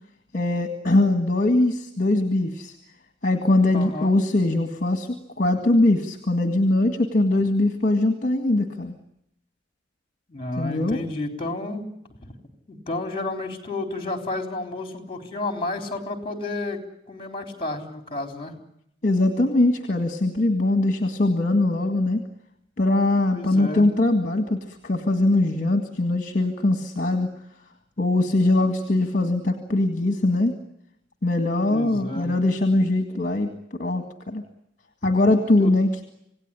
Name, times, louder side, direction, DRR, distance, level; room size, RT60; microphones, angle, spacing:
voice 1, 0.3-2.7 3.2-5.1 5.4-9.0 10.6-11.0 19.0-22.2 22.8-27.3 28.0-30.6 31.2-34.4 35.0-36.0, left 2 dB, 45° left, 6 dB, 1.9 m, -21 dB
voice 2, 3.7-4.1 10.3-11.9 12.7-16.8 17.1-18.6 23.3-23.9 31.6-32.3 35.6-35.7, left 2 dB, 30° left, 5 dB, 3.8 m, -31 dB
27.0 x 17.5 x 10.0 m, 0.79 s
head